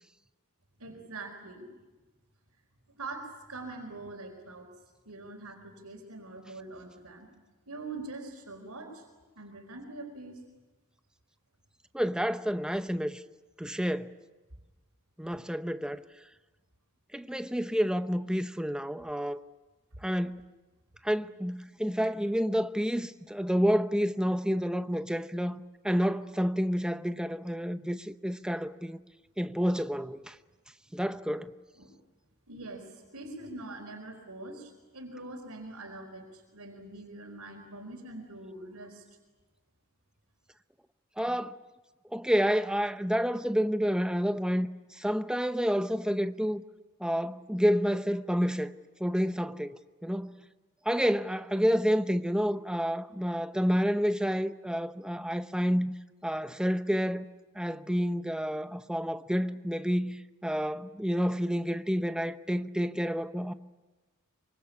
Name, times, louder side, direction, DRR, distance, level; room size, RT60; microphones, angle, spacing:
voice 1, 0.8-1.7 2.9-4.7 5.0-7.3 7.7-9.1 9.3-10.4 31.8-31.9 32.5-39.0, right 2 dB, 70° right, 4.5 m, -43 dB
voice 2, 11.9-13.2 13.6-14.1 15.2-16.0 17.1-19.4 20.0-20.5 21.0-29.0 29.4-30.3 30.9-31.5 41.2-41.6 42.1-44.7 44.9-46.6 47.0-48.7 49.0-50.4 50.8-55.9 56.2-57.2 57.5-63.5, equal, 5° right, 0.8 m, -29 dB
25.5 x 24.0 x 8.5 m
head